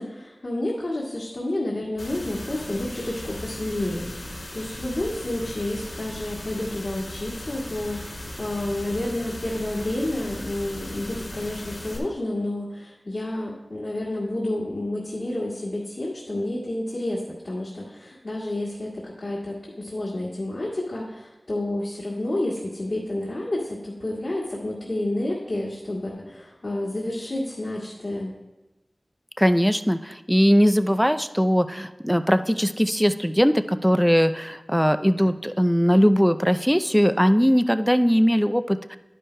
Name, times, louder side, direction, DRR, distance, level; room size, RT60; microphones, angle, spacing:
voice 1, 0.0-28.3, left 1 dB, 65° left, -6 dB, 1.8 m, -30 dB
sound 1, 2.0-12.0, left 1 dB, 90° left, 2.2 m, -37 dB
voice 2, 29.4-39.0, equal, ahead, 9 dB, 0.4 m, -20 dB
11.5 x 10.0 x 2.2 m, 1.0 s
wide cardioid pair, 45°, 0 cm